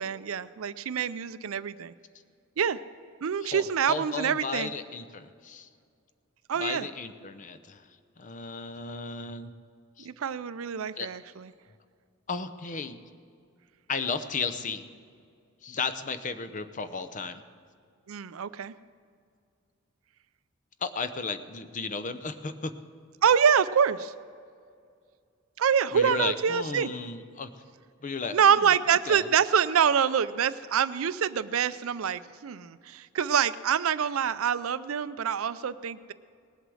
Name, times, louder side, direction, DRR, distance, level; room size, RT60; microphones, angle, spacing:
voice 1, 0.0-1.9 2.6-2.8 3.2-4.7 6.5-6.9 10.0-11.5 18.1-18.7 23.2-24.1 25.6-26.9 28.3-36.1, right 7 dB, 80° right, 15 dB, 0.5 m, -26 dB
voice 2, 3.4-5.7 6.6-7.8 8.2-9.5 10.0-10.1 11.0-11.1 12.3-13.0 13.9-14.8 15.6-17.4 20.8-22.7 25.9-27.5 28.0-29.3, left 4 dB, 40° left, 11 dB, 0.7 m, -34 dB
19.0 x 8.1 x 6.3 m, 2.3 s
head